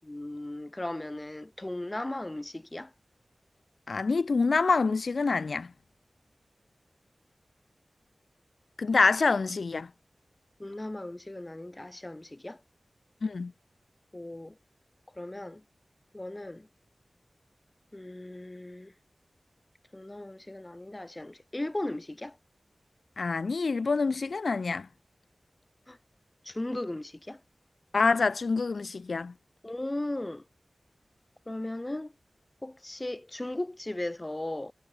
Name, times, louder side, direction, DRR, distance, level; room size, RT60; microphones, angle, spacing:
voice 1, 0.0-2.9 10.6-12.6 14.1-14.5 15.2-15.6 16.1-16.7 17.9-18.9 19.9-22.4 25.9-26.0 26.4-27.4 29.6-30.4 31.5-32.1 32.6-34.7, left 1 dB, 20° left, 5.9 m, -37 dB
voice 2, 3.9-5.7 8.8-9.9 13.2-13.5 23.2-24.9 27.9-29.3, left 4 dB, 70° left, 3.5 m, -26 dB
wide cardioid pair, 90°, 0 cm